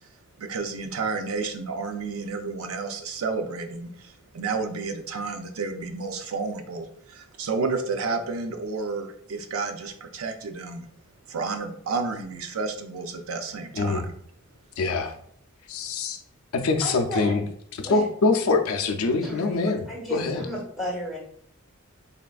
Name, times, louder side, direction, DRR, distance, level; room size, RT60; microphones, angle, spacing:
voice 1, 0.4-10.9 11.3-14.0, right 4 dB, 80° right, 6 dB, 0.4 m, -31 dB
voice 2, 14.8-15.1 15.7-16.2 16.5-17.4 17.8-19.8 20.1-20.5, left 3 dB, 85° left, 4 dB, 0.4 m, -24 dB
voice 3, 16.8-17.3 17.8-18.1 19.2-21.2, equal, ahead, -6 dB, 1.3 m, -33 dB
3.4 x 2.4 x 2.3 m, 0.63 s
head